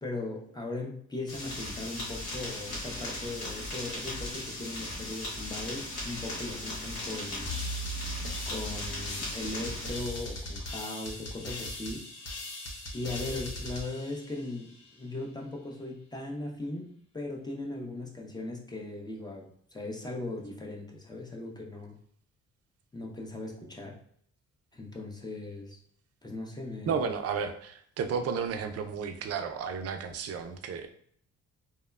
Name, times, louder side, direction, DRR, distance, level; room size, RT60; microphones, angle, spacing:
voice 1, 0.0-7.5 8.5-12.1 12.9-21.9 22.9-24.0 24.7-25.8 26.2-26.9, left 2 dB, 15° left, 0 dB, 0.6 m, -38 dB
sound 1, 1.3-9.9, left 1 dB, 85° left, 1.4 m, -38 dB
sound 2, 7.4-14.9, left 1 dB, 55° left, 0.7 m, -39 dB
voice 2, 26.9-30.9, right 6 dB, 55° right, 7 dB, 0.4 m, -32 dB
2.9 x 2.1 x 2.2 m, 0.63 s
cardioid pair, 90°, 30 cm